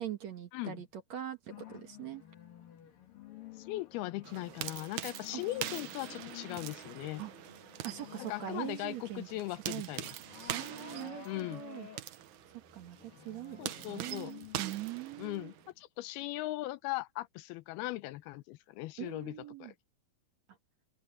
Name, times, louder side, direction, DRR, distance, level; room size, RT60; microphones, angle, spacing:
voice 1, 0.0-2.2 5.3-5.4 7.2-7.3 7.8-9.3 9.7-9.9 10.5-11.9 12.7-15.5 19.0-19.7, right 12 dB, 55° right, 2.3 m, -42 dB
voice 2, 0.5-0.8 3.6-7.2 8.2-10.1 11.3-11.6 13.6-14.4 15.2-19.7, left 17 dB, 85° left, 2.6 m, -39 dB
sound 1, 1.5-9.1 9.5-15.8, left 10 dB, 65° left, 4.4 m, -52 dB
sound 2, 4.2-15.7, right 13 dB, 70° right, 1.9 m, -44 dB
open air
omnidirectional pair, 4.4 m